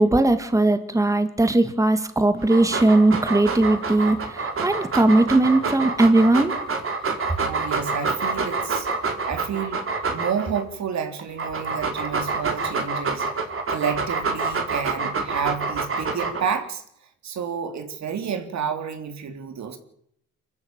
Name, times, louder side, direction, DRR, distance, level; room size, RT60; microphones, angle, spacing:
voice 1, 0.0-6.5, right 2 dB, 10° right, 2.0 m, -19 dB
Dog, 2.4-10.6 11.2-16.6, right 4 dB, 45° right, 4.6 m, -27 dB
voice 2, 7.4-9.9 10.1-16.8 17.2-19.8, right 7 dB, 65° right, 3.5 m, -30 dB
25.0 x 14.0 x 8.9 m
cardioid pair, 90°, 30 cm